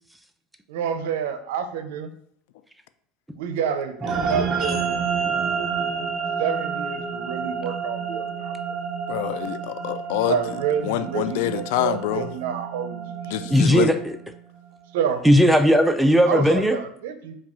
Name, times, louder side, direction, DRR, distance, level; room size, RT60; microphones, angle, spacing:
voice 1, 0.7-2.1 3.4-5.0 6.4-8.8 10.3-13.5 14.9-15.2 16.3-17.4, right 7 dB, 85° right, 0.5 m, -29 dB
sound 1, 4.0-14.6, right 5 dB, 35° right, 0.8 m, -29 dB
voice 2, 9.1-10.4 10.8-12.3 13.3-13.9, left 13 dB, 75° left, 0.3 m, -26 dB
voice 3, 13.5-14.1 15.2-16.8, equal, 5° right, 0.4 m, -17 dB
4.7 x 2.3 x 4.2 m
supercardioid pair, 135°, 0 cm